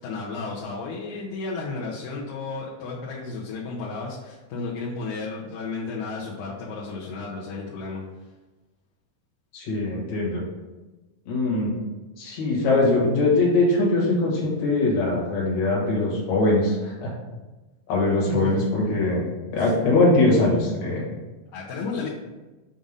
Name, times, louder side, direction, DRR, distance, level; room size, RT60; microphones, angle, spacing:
voice 1, 0.0-8.0 18.3-18.5 19.6-19.9 21.5-22.1, left 4 dB, 75° left, -6 dB, 2.2 m, -33 dB
voice 2, 9.5-10.4 11.3-11.7 12.2-17.1 17.9-19.3 19.5-21.0, left 2 dB, 55° left, -3 dB, 2.4 m, -22 dB
7.3 x 2.6 x 5.2 m, 1.2 s
omnidirectional pair, 4.3 m